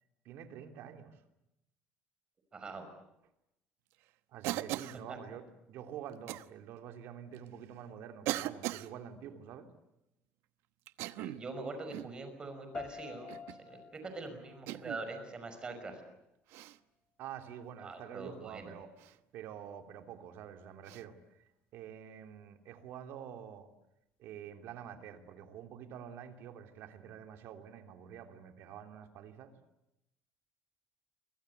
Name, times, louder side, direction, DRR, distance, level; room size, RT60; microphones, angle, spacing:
voice 1, 0.2-1.2 4.3-9.7 17.2-18.9 19.3-21.2 21.7-23.7 24.2-29.5, right 9 dB, 60° right, 6 dB, 3.2 m, -47 dB
voice 2, 2.5-2.9 5.1-5.2 11.2-13.4 13.7-16.0 17.8-18.7, right 3 dB, 20° right, 7 dB, 5.5 m, -43 dB
Cough, 4.4-5.0 6.3-6.5 7.4-7.5 8.3-8.9 10.9-11.5 11.9-12.2 13.3-13.6 14.7-15.0 16.5-16.8 19.0-19.2 20.9-21.0, right 15 dB, 80° right, 1.1 m, -38 dB
sound 1, 12.7-15.7, left 6 dB, 25° left, 2.1 m, -49 dB
29.0 x 24.0 x 8.1 m, 0.87 s
cardioid pair, 175°, 4 cm